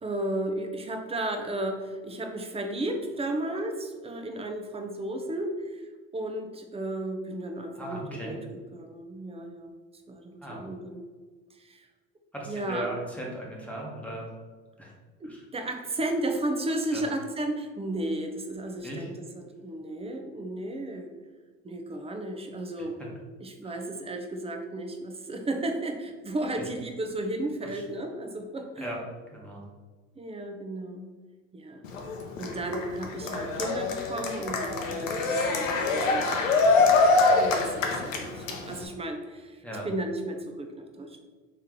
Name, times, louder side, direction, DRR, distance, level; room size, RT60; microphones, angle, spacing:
voice 1, 0.0-8.4 8.7-9.7 10.1-11.0 11.5-11.9 12.4-12.9 15.2-21.1 21.6-23.0 23.4-28.9 30.2-31.1 31.5-31.8 32.4-36.5 37.0-37.1 37.4-41.2, right 1 dB, 15° right, 4 dB, 0.5 m, -34 dB
voice 2, 7.7-8.3 10.4-10.6 12.3-14.3 14.8-14.9 15.2-15.4 16.9-17.0 18.8-19.1 23.6-23.7 27.6-27.8 28.8-29.0 29.3-29.6 39.6-39.9, right 1 dB, 5° left, -3 dB, 1.1 m, -37 dB
Cheering, 31.8-38.9, left 3 dB, 85° left, 0.7 m, -24 dB
3.2 x 3.1 x 3.7 m, 1.4 s
hypercardioid pair, 75°, 38 cm